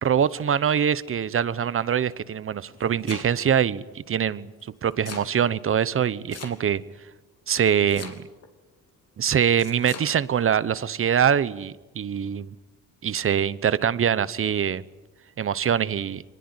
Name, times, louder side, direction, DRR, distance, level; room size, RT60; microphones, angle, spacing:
voice 1, 0.0-4.5 4.8-6.8 7.5-8.3 9.2-12.6 13.0-14.8 15.4-16.2, right 8 dB, 45° right, 1.0 m, -24 dB
Domestic sounds home sounds, 2.5-3.6 4.6-5.3 6.3-6.9 7.9-8.5 9.6-10.1, left 6 dB, 55° left, 3.2 m, -40 dB
24.0 x 20.5 x 9.7 m
cardioid pair, 90°, 30 cm